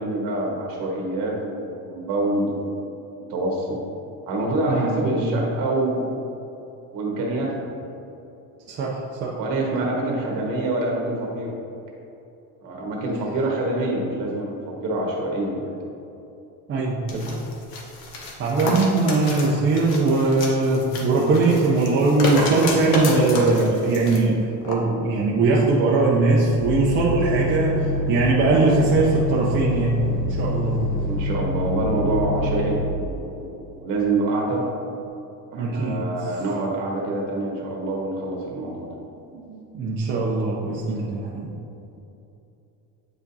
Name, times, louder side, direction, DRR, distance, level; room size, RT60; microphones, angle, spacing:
voice 1, 0.0-2.7 3.1-3.8 4.3-6.1 6.9-7.7 9.4-11.5 12.6-15.7 31.0-34.7 35.5-38.9 41.0-41.1, right 2 dB, 50° right, -2 dB, 1.5 m, -26 dB
voice 2, 4.7-5.3 8.7-9.4 16.7-17.3 18.4-30.0 30.3-30.8 35.5-36.0 39.3-41.5, right 3 dB, 30° right, -5 dB, 0.6 m, -21 dB
sound 1, 17.1-24.2 24.6-24.8, left 2 dB, 65° left, 1.1 m, -30 dB
sound 2, 26.5-33.1, left 1 dB, 85° left, 0.9 m, -26 dB
8.7 x 4.9 x 2.7 m, 2.8 s
cardioid pair, 165°, 41 cm